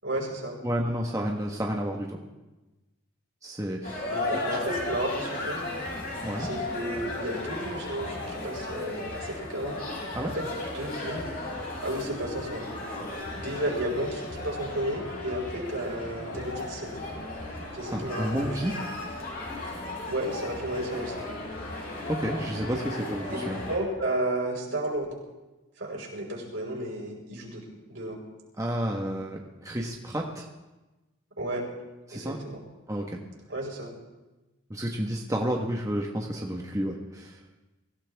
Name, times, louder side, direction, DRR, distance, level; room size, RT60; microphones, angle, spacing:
voice 1, 0.0-0.6 4.0-5.7 6.4-9.8 10.3-10.5 10.7-11.3 11.8-12.7 13.3-16.9 17.7-18.5 20.1-21.3 23.3-23.4 23.7-25.1 25.8-27.6 27.9-28.2 31.4-31.7 32.1-32.6 33.5-33.9, right 1 dB, 70° right, -2 dB, 5.3 m, -32 dB
voice 2, 0.6-2.2 3.4-4.0 4.3-4.6 6.2-6.5 10.1-10.3 17.9-18.8 22.1-23.6 28.6-30.5 32.1-32.4 32.9-33.2 34.7-37.4, equal, 15° right, 0 dB, 1.4 m, -31 dB
sound 1, 3.8-23.8, left 2 dB, 45° left, 5.6 m, -35 dB
24.0 x 16.0 x 3.6 m, 1.1 s
head